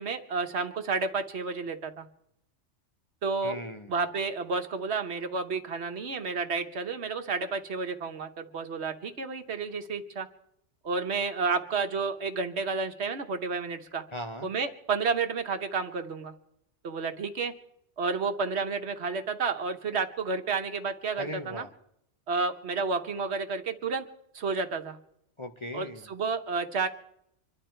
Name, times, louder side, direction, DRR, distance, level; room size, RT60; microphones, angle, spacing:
voice 1, 0.0-2.1 3.2-3.6 3.9-10.3 10.8-14.0 14.4-16.3 16.8-17.5 18.0-21.6 22.3-24.0 24.3-25.0 25.7-26.9, right 4 dB, 65° right, 7 dB, 1.3 m, -31 dB
voice 2, 3.4-3.9 14.1-14.5 21.2-21.7 25.4-26.1, left 1 dB, 30° left, 3 dB, 0.7 m, -38 dB
26.0 x 11.5 x 4.5 m, 0.77 s
omnidirectional pair, 1.2 m